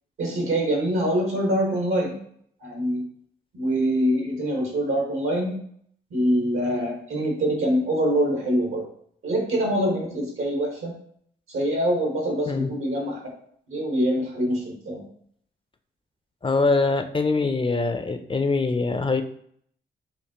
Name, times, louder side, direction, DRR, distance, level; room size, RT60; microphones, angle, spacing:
voice 1, 0.2-2.2 2.6-3.0 3.5-5.6 6.1-8.9 9.2-10.9 11.5-13.2 13.7-15.0, equal, 80° right, 0 dB, 1.4 m, -24 dB
voice 2, 16.4-19.2, left 3 dB, 25° left, 8 dB, 0.4 m, -23 dB
5.0 x 2.5 x 2.9 m, 0.64 s
supercardioid pair, 55°, 21 cm